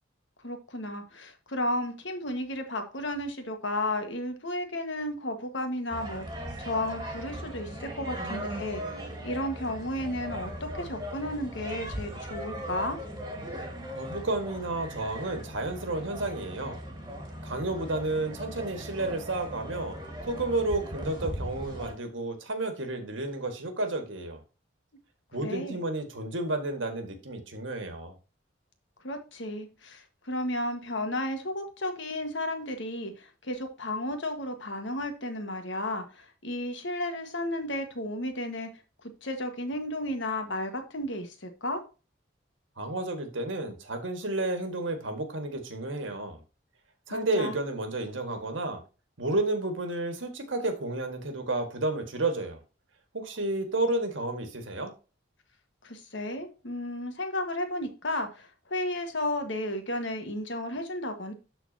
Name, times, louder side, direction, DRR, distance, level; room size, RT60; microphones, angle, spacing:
voice 1, 0.4-13.0 25.4-25.8 29.0-38.7 39.2-41.8 47.1-47.6 55.8-61.3, left 1 dB, 70° left, 1.5 m, -33 dB
sound 1, 5.9-21.9, equal, 20° right, 1.7 m, -38 dB
voice 2, 13.9-16.8 17.4-20.0 20.2-24.4 25.3-28.1 42.8-46.4 47.1-48.8 49.2-52.6 53.1-54.9, right 2 dB, 80° right, 1.7 m, -31 dB
12.5 x 4.2 x 2.8 m
head